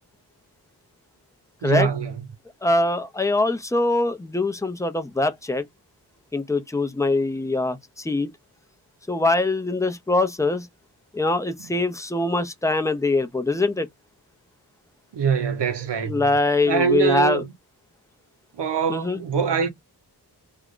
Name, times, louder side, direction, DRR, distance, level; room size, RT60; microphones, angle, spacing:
voice 1, 1.6-2.1 15.1-16.2 16.6-17.5 18.6-19.7, right 7 dB, 90° right, 0.9 m, -23 dB
voice 2, 2.6-5.7 6.3-8.3 9.1-10.7 11.1-13.9 16.0-17.4 18.9-19.2, left 2 dB, 10° left, 0.4 m, -23 dB
3.5 x 2.0 x 3.7 m
wide cardioid pair, 110°, 40 cm